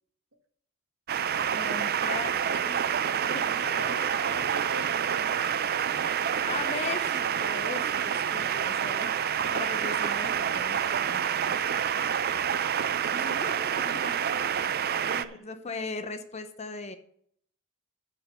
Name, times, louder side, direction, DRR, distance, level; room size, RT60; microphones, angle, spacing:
sound 1, 1.1-15.2, right 8 dB, 50° right, 0.5 m, -28 dB
voice 1, 1.5-2.9 3.3-3.9 6.4-9.2 9.5-11.6 13.1-14.2 15.4-17.0, left 3 dB, 35° left, 9 dB, 0.8 m, -39 dB
voice 2, 3.3-5.4 8.4-8.9 9.2-9.5 15.0-15.5, right 2 dB, 70° right, 6 dB, 1.4 m, -42 dB
11.5 x 5.3 x 6.2 m, 0.66 s
head